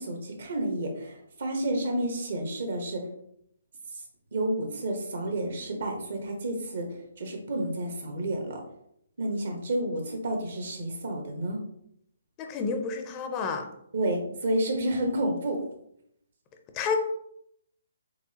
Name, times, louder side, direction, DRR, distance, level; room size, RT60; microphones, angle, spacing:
voice 1, 0.0-3.0 4.3-6.9 7.2-8.6 9.2-11.6 13.9-15.6, right 1 dB, 60° right, 2 dB, 1.2 m, -30 dB
voice 2, 12.4-13.7 16.7-17.0, left 5 dB, 25° left, 5 dB, 0.5 m, -29 dB
4.5 x 3.4 x 2.9 m, 0.73 s
figure-of-eight pair, 140°, 0 cm